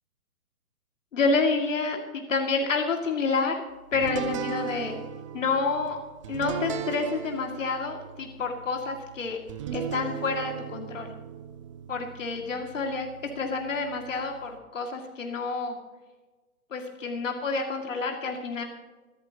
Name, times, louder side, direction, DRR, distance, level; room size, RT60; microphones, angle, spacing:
voice 1, 1.1-3.6 3.9-5.0 5.3-6.0 6.3-9.4 9.7-11.1 11.9-13.1 13.4-15.8 16.7-18.6, left 4 dB, 60° left, 2 dB, 2.4 m, -28 dB
sound 1, 3.9-14.6, right 8 dB, 20° right, 0.7 m, -38 dB
26.0 x 13.0 x 2.9 m, 1.2 s
figure-of-eight pair, 130°, 43 cm